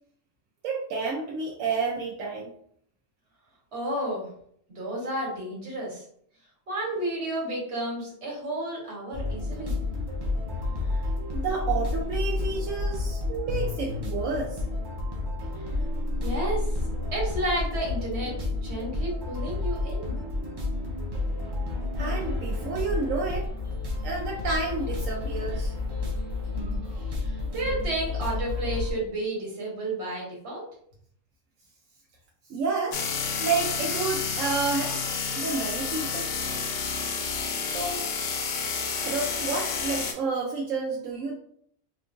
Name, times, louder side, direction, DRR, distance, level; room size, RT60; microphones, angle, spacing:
voice 1, 0.6-2.5 10.9-11.1 11.3-14.6 22.0-23.5 24.0-25.7 26.7-26.8 32.5-33.0 33.4-35.0 35.4-36.3 37.7-38.0 39.0-41.3, right 4 dB, 85° right, -2 dB, 1.0 m, -30 dB
voice 2, 3.7-4.3 4.7-6.0 6.7-9.8 15.6-15.7 16.2-16.8 17.1-20.2 26.5-26.8 27.1-30.6, right 1 dB, 60° right, -3 dB, 1.4 m, -32 dB
sound 1, 9.1-28.9, left 2 dB, 30° right, 0.4 m, -30 dB
sound 2, 32.9-40.1, left 5 dB, 65° left, 0.7 m, -30 dB
3.6 x 2.4 x 2.5 m, 0.65 s
omnidirectional pair, 1.3 m